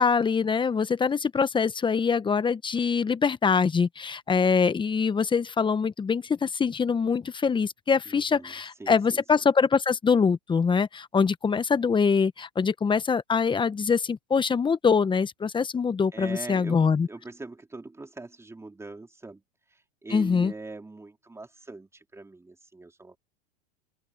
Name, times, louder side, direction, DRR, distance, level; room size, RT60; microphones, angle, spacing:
voice 1, 0.0-17.1 20.1-20.5, left 5 dB, 15° left, 1.2 m, -24 dB
voice 2, 8.0-9.4 16.1-19.4 19.7-23.2, right 3 dB, 10° right, 4.6 m, -42 dB
open air
hypercardioid pair, 105°, 29 cm